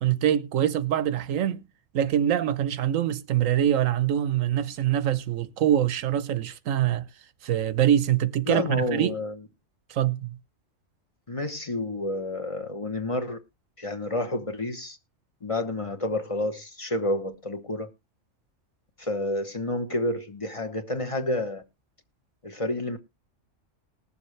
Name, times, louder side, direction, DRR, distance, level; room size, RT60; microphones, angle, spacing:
voice 1, 0.0-1.7 1.9-7.1 7.4-9.2 9.9-10.4, right 11 dB, 90° right, 1.2 m, -24 dB
voice 2, 8.5-9.4 11.3-13.4 13.8-15.0 15.4-17.9 19.0-21.6 22.4-23.0, left 1 dB, 30° left, 1.0 m, -29 dB
20.0 x 7.1 x 3.2 m
omnidirectional pair, 1.3 m